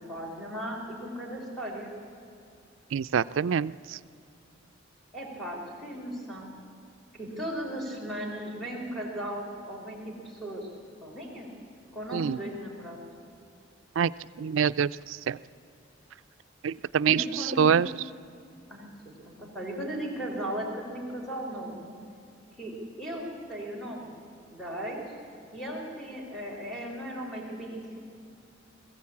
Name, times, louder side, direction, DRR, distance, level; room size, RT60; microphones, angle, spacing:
voice 1, 0.1-1.9 5.1-6.6 7.2-10.7 11.0-11.5 11.9-13.0 17.1-17.7 18.7-18.9 19.3-22.0 22.6-24.1 24.5-25.2 25.5-28.0, equal, ahead, -2 dB, 4.1 m, -36 dB
voice 2, 2.9-3.7 12.1-12.4 14.0-14.1 14.4-14.9 15.3-15.4 16.6-17.2 17.6-17.9, right 7 dB, 75° right, 17 dB, 0.4 m, -24 dB
21.0 x 14.5 x 8.5 m, 2.6 s
head